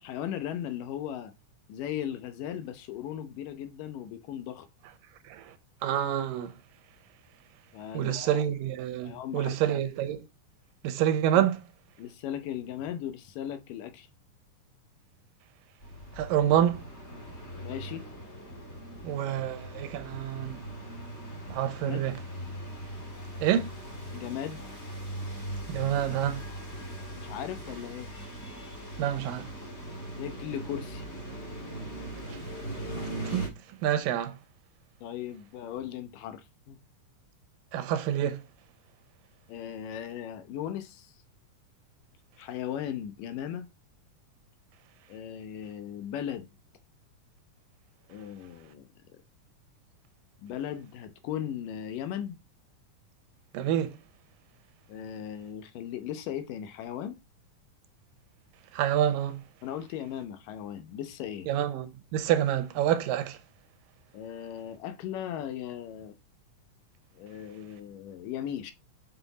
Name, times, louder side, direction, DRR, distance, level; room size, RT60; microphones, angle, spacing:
voice 1, 0.0-1.3 1.7-4.7 7.7-8.4 9.1-9.5 11.3-11.4 12.0-14.1 17.6-18.1 21.9-22.1 24.1-24.7 27.1-28.1 30.2-31.0 35.0-36.8 39.5-41.1 42.4-43.7 45.1-46.5 48.1-48.9 50.4-52.4 54.9-57.2 59.6-61.5 64.1-66.2 67.1-68.7, left 10 dB, 80° left, 2.5 m, -37 dB
voice 2, 5.8-6.5 7.9-10.3 10.8-11.6 16.2-16.8 19.0-20.6 21.5-22.1 23.4-23.7 25.7-26.4 29.0-29.5 33.2-33.5 33.8-34.4 37.7-38.4 53.5-54.0 58.7-59.4 61.5-63.4, right 10 dB, 85° right, 2.6 m, -27 dB
sound 1, 15.8-33.5, right 1 dB, 25° left, 1.9 m, -40 dB
6.7 x 5.5 x 4.0 m
omnidirectional pair, 3.8 m